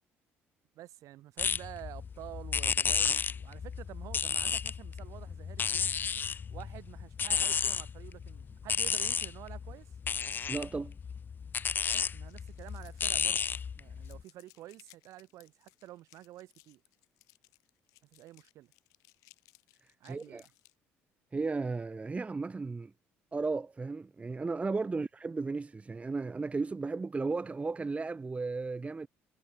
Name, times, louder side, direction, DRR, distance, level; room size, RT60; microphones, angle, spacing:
voice 1, 0.7-5.9 6.5-9.9 11.9-13.4 13.8-16.8 18.1-18.7 20.0-20.4, right 15 dB, 70° right, 3.2 m, -49 dB
sound 1, 1.4-14.2, left 6 dB, 35° left, 0.4 m, -33 dB
voice 2, 10.5-10.9 20.1-20.4 21.3-22.9 23.3-29.1, right 3 dB, 20° right, 0.7 m, -34 dB
sound 2, 12.3-13.7 14.0-20.7, left 23 dB, 80° left, 4.5 m, -63 dB
supercardioid pair, 70°, 6 cm